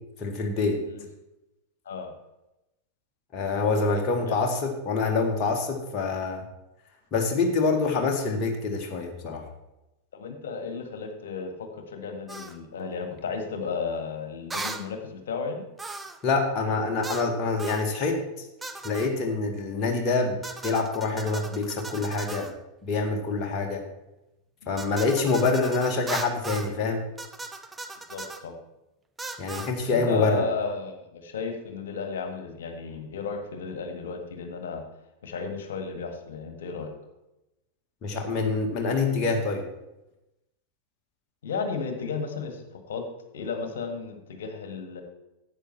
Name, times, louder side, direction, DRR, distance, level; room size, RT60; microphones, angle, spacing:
voice 1, 0.2-0.8 3.3-6.4 7.1-9.4 16.2-18.2 18.8-22.5 22.8-23.8 24.7-27.0 29.4-30.5 38.0-39.6, left 3 dB, 30° left, 1 dB, 1.9 m, -26 dB
voice 2, 10.1-15.7 24.6-24.9 28.1-28.5 29.8-34.8 35.2-36.9 41.4-43.0 43.3-45.0, left 5 dB, 60° left, 6 dB, 1.7 m, -33 dB
sound 1, 12.3-12.6 14.5-14.9 15.8-16.2 17.0-17.3 17.6-17.9 18.6-19.1 20.4-22.5 24.8-26.7 27.2-28.4 29.2-29.7, right 3 dB, 10° right, 0.7 m, -37 dB
12.5 x 8.5 x 4.5 m, 0.94 s
figure-of-eight pair, 90°, 0 cm